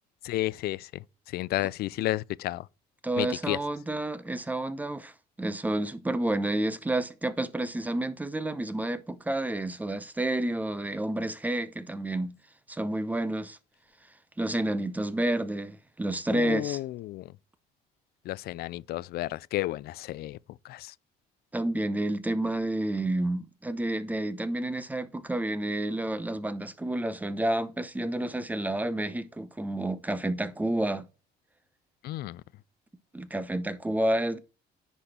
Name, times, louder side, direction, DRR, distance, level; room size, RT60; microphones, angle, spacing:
voice 1, 0.2-2.7 3.2-3.6 16.3-17.3 18.3-20.4 20.6-20.9 32.0-32.4, left 16 dB, 65° left, 0.4 m, -32 dB
voice 2, 3.0-5.1 5.4-12.4 12.7-13.6 14.4-16.8 21.5-31.0 33.1-34.4, right 1 dB, 10° right, 0.7 m, -30 dB
10.0 x 4.3 x 4.3 m
cardioid pair, 110°, 17 cm